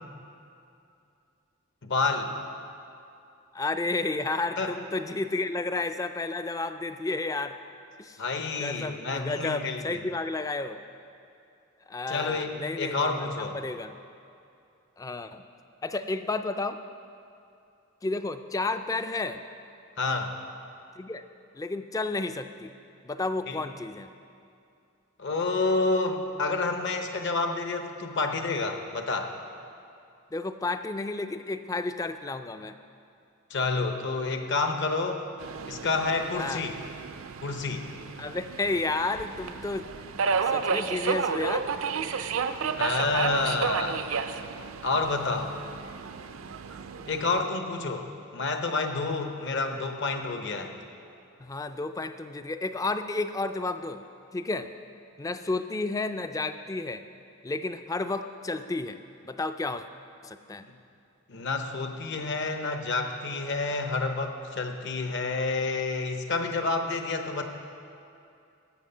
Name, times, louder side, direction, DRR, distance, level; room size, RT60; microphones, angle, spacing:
voice 1, 1.8-2.3 4.6-4.7 8.2-10.0 12.1-13.6 20.0-20.4 23.5-23.6 25.2-29.4 33.5-35.2 35.7-36.7 37.4-37.9 42.8-44.1 44.8-45.6 47.1-50.8 61.3-67.4, left 3 dB, 55° left, 6 dB, 0.8 m, -29 dB
voice 2, 3.5-7.6 8.0-8.2 8.6-10.8 11.9-13.3 13.5-14.0 15.0-15.4 15.8-16.8 18.0-19.4 21.0-21.2 21.5-22.7 23.0-24.1 30.3-32.7 36.4-36.6 38.2-41.7 51.4-54.0 54.3-54.7 55.2-57.0 57.4-59.8 60.2-60.7, left 3 dB, 15° left, 10 dB, 0.3 m, -31 dB
Subway metro underground, 35.4-47.4, right 5 dB, 70° right, 0.5 m, -32 dB
12.5 x 7.8 x 5.5 m, 2.6 s
head